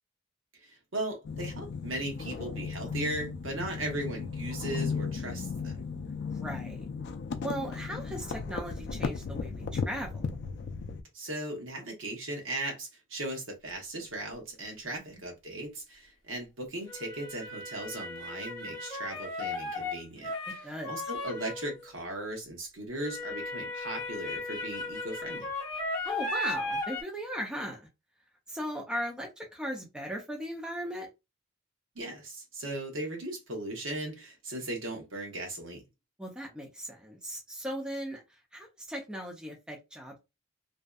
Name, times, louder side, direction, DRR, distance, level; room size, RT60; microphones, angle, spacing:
voice 1, 0.6-5.8 11.1-25.5 31.9-35.8, right 1 dB, 65° right, 0.9 m, -38 dB
sound 1, 1.2-11.0, left 5 dB, 55° left, 0.3 m, -36 dB
voice 2, 6.3-6.8 7.4-10.1 20.6-20.9 26.0-27.8 28.5-31.1 36.2-38.2 38.5-40.2, equal, 5° right, 0.5 m, -38 dB
sound 2, 14.0-14.1 16.9-21.9 23.0-27.0, left 2 dB, 20° left, 0.9 m, -36 dB
2.6 x 2.2 x 2.2 m
head